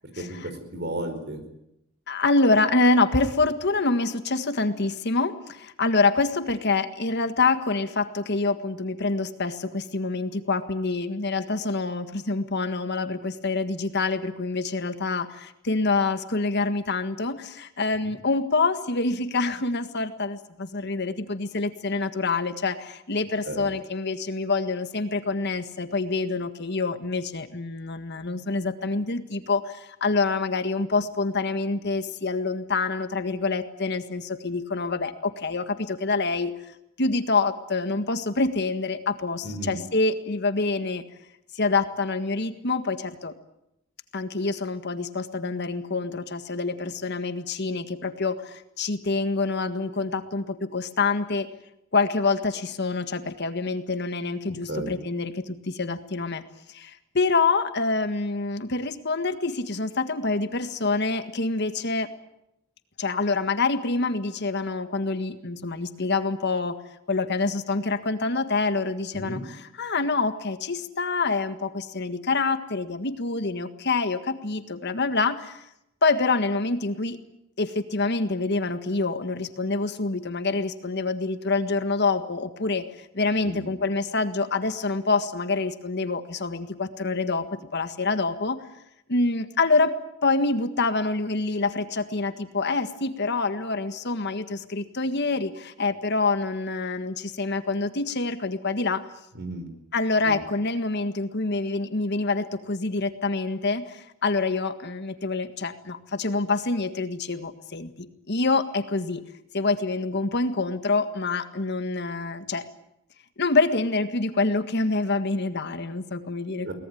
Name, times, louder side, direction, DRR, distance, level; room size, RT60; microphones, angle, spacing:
voice 1, 0.2-1.4 23.4-23.7 39.4-39.8 54.4-54.9 69.1-69.4 83.4-83.7 99.3-99.7 100.2-100.4 116.6-116.7, right 1 dB, 55° right, 8 dB, 4.9 m, -34 dB
voice 2, 2.1-36.5 37.0-41.0 41.5-43.3 44.1-51.5 51.9-56.4 56.7-62.1 63.0-66.8 67.1-69.4 69.8-75.6 76.0-77.2 77.6-82.8 83.1-88.6 89.1-90.0 90.2-99.1 99.9-109.2 109.5-112.7 113.4-116.7, left 3 dB, 55° left, 9 dB, 1.7 m, -26 dB
23.0 x 19.0 x 9.3 m, 0.82 s
head